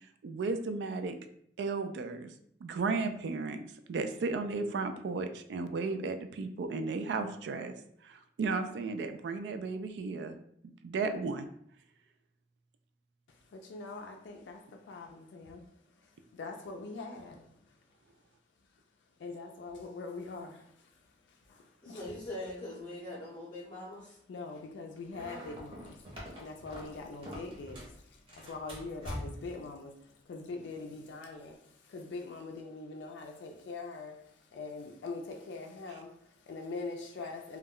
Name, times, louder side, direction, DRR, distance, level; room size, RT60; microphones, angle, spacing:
voice 1, 0.2-1.1 1.6-2.3 2.6-3.6 3.9-7.7 8.0-10.4 10.6-11.4, right 4 dB, 75° right, 0.3 m, -34 dB
voice 2, 13.3-17.8 18.7-18.8 19.2-22.2 24.3-37.6, left 3 dB, 85° left, 0.3 m, -43 dB
voice 3, 21.8-24.2, left 1 dB, 30° left, 0.5 m, -42 dB
sound 1, 25.1-28.0 28.3-29.6, equal, 30° right, 0.7 m, -44 dB
2.2 x 2.1 x 3.5 m
head